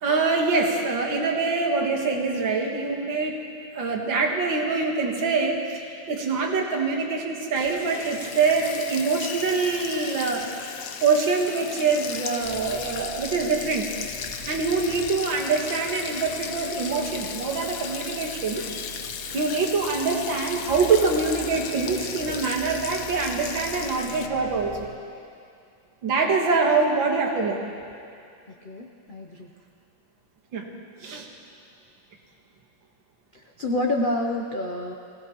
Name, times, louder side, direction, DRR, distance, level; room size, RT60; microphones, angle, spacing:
voice 1, 0.0-3.4 3.7-13.9 14.5-18.6 19.3-24.9 26.0-27.6 30.5-30.7 31.0-31.3, right 4 dB, 70° right, 0 dB, 2.2 m, -24 dB
Sink (filling or washing), 7.6-24.3, left 7 dB, 65° left, 0.9 m, -36 dB
sound 1, 12.4-24.9, right 3 dB, 20° right, 2.4 m, -44 dB
voice 2, 28.6-29.5 33.3-34.9, left 1 dB, 85° left, 1 dB, 0.4 m, -28 dB
21.5 x 17.0 x 3.0 m, 2.4 s
omnidirectional pair, 2.2 m